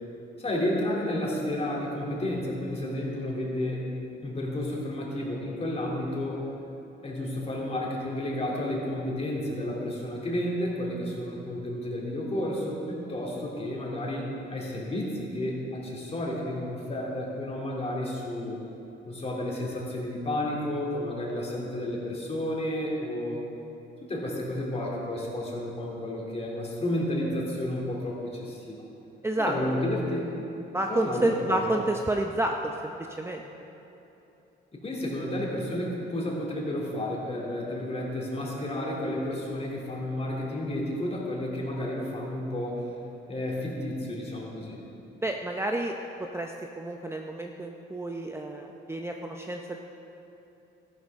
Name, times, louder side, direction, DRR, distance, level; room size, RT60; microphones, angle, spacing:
voice 1, 0.4-3.8 4.2-6.5 7.0-18.6 19.0-23.4 24.0-28.8 29.4-30.3 30.9-31.6 34.7-42.9 43.3-44.8, left 1 dB, 30° left, -3 dB, 2.9 m, -31 dB
voice 2, 29.2-29.5 30.7-32.9 33.2-33.5 45.2-45.9 46.2-49.8, right 1 dB, 15° right, 2 dB, 0.7 m, -29 dB
13.5 x 11.5 x 3.6 m, 2.9 s
cardioid pair, 90°, 20 cm